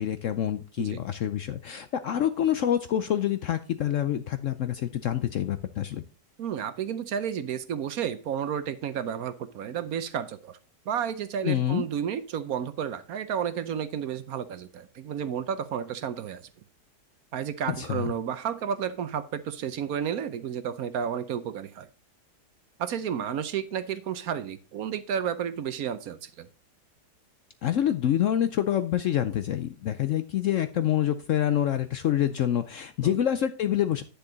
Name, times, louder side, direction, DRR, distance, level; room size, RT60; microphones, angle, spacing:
voice 1, 0.0-6.0 11.4-11.8 17.7-18.1 27.6-34.0, left 11 dB, 70° left, 0.8 m, -27 dB
voice 2, 6.4-10.6 10.9-16.4 17.3-21.9 22.8-26.5 33.0-33.2, right 8 dB, 65° right, 1.1 m, -32 dB
9.7 x 6.8 x 3.9 m
omnidirectional pair, 1.8 m